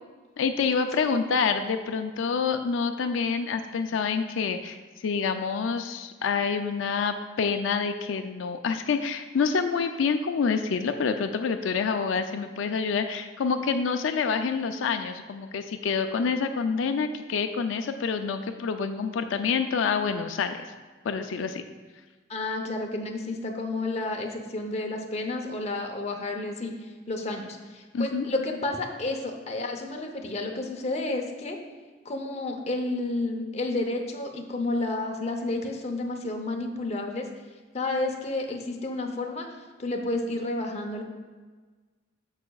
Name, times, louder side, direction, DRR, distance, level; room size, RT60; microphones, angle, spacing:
voice 1, 0.4-4.8 5.0-20.6 21.0-21.6 27.9-28.2, left 5 dB, 90° left, 7 dB, 0.4 m, -27 dB
voice 2, 22.3-31.6 32.0-37.3 37.7-39.5 39.8-41.0, left 2 dB, 35° left, 2 dB, 0.8 m, -31 dB
13.5 x 4.8 x 2.3 m, 1.4 s
head